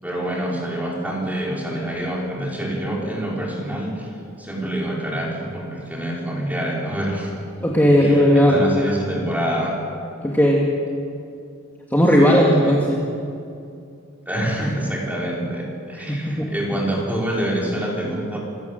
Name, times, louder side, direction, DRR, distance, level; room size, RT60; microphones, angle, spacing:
voice 1, 0.0-4.1 4.4-7.3 8.0-9.8 12.2-12.7 14.3-18.4, right 1 dB, 10° right, -3 dB, 5.3 m, -26 dB
voice 2, 7.6-8.7 10.2-10.7 11.9-13.0 16.0-16.5, equal, 10° left, -3 dB, 2.2 m, -16 dB
26.5 x 17.0 x 8.0 m, 2.5 s
head